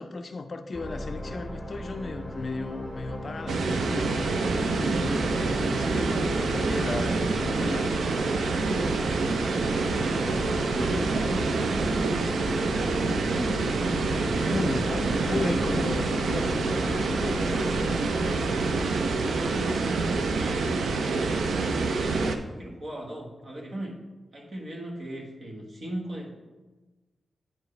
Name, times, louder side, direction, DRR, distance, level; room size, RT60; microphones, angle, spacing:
voice 1, 0.0-7.9 14.3-17.7, left 3 dB, 45° left, 0.4 m, -35 dB
sound 1, 0.7-18.5, left 1 dB, 10° left, 1.0 m, -37 dB
sound 2, 3.5-22.4, right 3 dB, 85° right, 0.5 m, -26 dB
voice 2, 9.6-13.6 14.3-15.7 19.2-20.7 21.0-21.6 22.6-24.0 24.3-26.4, right 1 dB, 50° right, 1.4 m, -38 dB
8.9 x 4.6 x 3.2 m
wide cardioid pair, 120°, 0 cm